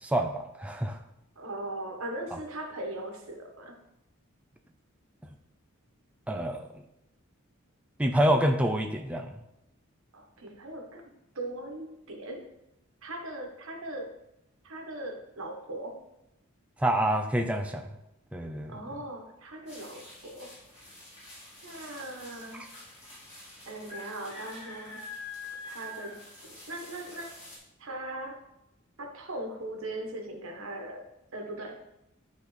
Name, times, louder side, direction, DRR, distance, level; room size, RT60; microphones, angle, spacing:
voice 1, 0.0-1.0 6.3-6.6 8.0-9.3 16.8-17.9 18.3-18.8, right 1 dB, 5° right, 3 dB, 0.4 m, -27 dB
voice 2, 1.4-3.8 10.1-12.5 13.0-14.1 14.6-16.0 18.7-20.5 21.6-22.7 23.7-25.1 25.6-26.2 26.7-27.3 27.8-28.4 29.0-31.1 31.3-31.9, right 1 dB, 75° right, 2 dB, 1.3 m, -39 dB
sound 1, 19.7-27.6, left 2 dB, 30° left, 2.6 m, -46 dB
11.5 x 4.0 x 3.3 m, 0.85 s
head